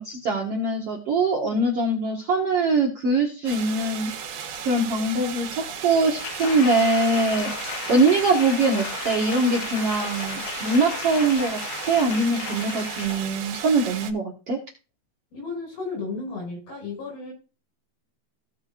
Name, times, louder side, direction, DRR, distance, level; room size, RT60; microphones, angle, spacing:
voice 1, 0.0-4.1 4.6-14.6, right 3 dB, 55° right, -1 dB, 1.7 m, -23 dB
sound 1, 3.5-14.1, right 7 dB, 80° right, 3.3 m, -35 dB
Applause, 6.2-13.3 13.8-13.9, left 5 dB, 90° left, 3.5 m, -34 dB
voice 2, 15.3-17.3, left 4 dB, 70° left, 0 dB, 6.9 m, -33 dB
17.0 x 6.3 x 2.5 m, 0.34 s
omnidirectional pair, 4.5 m